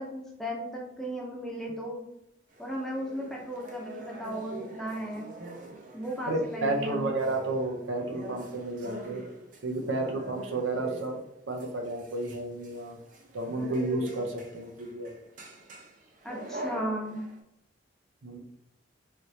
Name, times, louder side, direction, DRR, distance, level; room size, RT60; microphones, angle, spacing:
voice 1, 0.0-2.0 2.6-5.2 5.9-7.1 16.2-17.2, equal, ahead, -2 dB, 0.6 m, -35 dB
sound 1, 2.5-17.4, right 2 dB, 45° right, 0.5 m, -44 dB
voice 2, 6.3-9.2 9.6-11.1 11.5-13.0 13.3-15.1 18.2-18.4, right 2 dB, 85° right, 2 dB, 0.7 m, -31 dB
3.3 x 3.0 x 2.7 m, 0.81 s
head